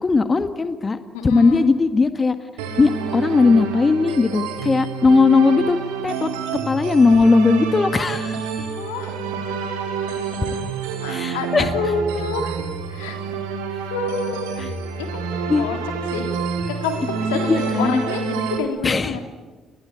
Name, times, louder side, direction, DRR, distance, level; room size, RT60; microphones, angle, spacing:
voice 1, 0.0-2.4 2.8-5.8 6.0-6.3 6.6-8.5 11.1-11.7 15.5-15.7 17.3-18.2 18.8-19.2, left 4 dB, 30° left, 10 dB, 1.7 m, -18 dB
voice 2, 1.1-1.6 8.7-9.1 11.0-12.6 12.9-13.2 13.8-15.2 15.6-15.8 16.1-16.3 16.7-19.2, left 5 dB, 80° left, 5 dB, 3.6 m, -28 dB
sound 1, 2.6-18.6, right 6 dB, 75° right, 4.0 m, -28 dB
30.0 x 21.5 x 8.7 m, 1.3 s
hypercardioid pair, 50°, 0 cm